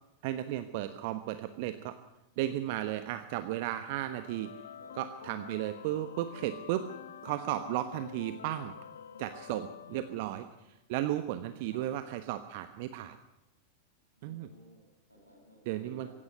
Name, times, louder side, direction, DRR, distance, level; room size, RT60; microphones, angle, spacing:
voice 1, 0.2-1.9 2.4-4.5 5.0-6.8 7.2-8.7 9.2-10.4 10.9-13.2 14.2-14.5 15.7-16.1, right 13 dB, 50° right, 10 dB, 1.1 m, -34 dB
sound 1, 3.7-10.7, left 9 dB, 65° left, 0.8 m, -48 dB
voice 2, 9.8-10.3 11.6-11.9 14.2-16.1, equal, 90° right, 1 dB, 7.1 m, -57 dB
16.5 x 16.5 x 9.6 m, 0.89 s
figure-of-eight pair, 90°, 0 cm